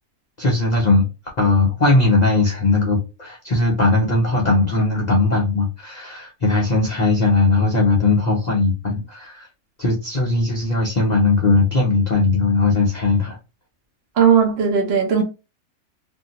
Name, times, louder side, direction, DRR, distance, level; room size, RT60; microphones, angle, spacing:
voice 1, 0.4-1.0 1.4-9.5 9.8-13.4, left 3 dB, 70° left, 0.4 m, -18 dB
voice 2, 14.2-15.2, right 7 dB, 55° right, 0.8 m, -16 dB
2.6 x 2.5 x 2.8 m
omnidirectional pair, 1.6 m